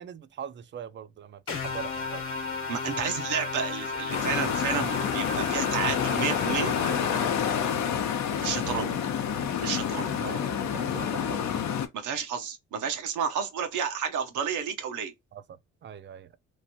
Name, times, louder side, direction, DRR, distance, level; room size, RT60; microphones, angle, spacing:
voice 1, 0.0-2.2 8.6-9.0 10.2-11.4 15.3-16.4, right 8 dB, 40° right, 0.4 m, -42 dB
sound 1, 1.5-8.0, left 4 dB, 45° left, 1.0 m, -34 dB
voice 2, 2.7-6.7 8.4-8.9 9.6-10.1 11.9-15.1, right 7 dB, 80° right, 0.8 m, -31 dB
sound 2, 4.1-11.9, left 8 dB, 65° left, 0.7 m, -28 dB
3.1 x 2.5 x 2.8 m
cardioid pair, 90°, 30 cm